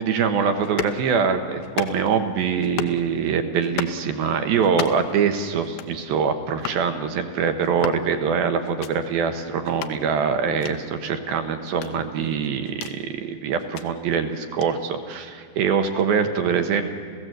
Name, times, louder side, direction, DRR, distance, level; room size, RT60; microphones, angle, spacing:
voice 1, 0.0-16.9, right 6 dB, 70° right, 7 dB, 2.8 m, -24 dB
sound 1, 0.6-1.0 1.6-2.2 2.6-3.0 3.6-4.0 4.6-5.1 5.6-6.0 6.6-6.8 7.6-8.1 8.6-8.9 9.6-10.0 10.6-10.8 11.6-13.0 13.6-13.9 14.6-14.7, left 11 dB, 75° left, 2.3 m, -33 dB
29.0 x 16.0 x 7.9 m, 2.2 s
omnidirectional pair, 4.9 m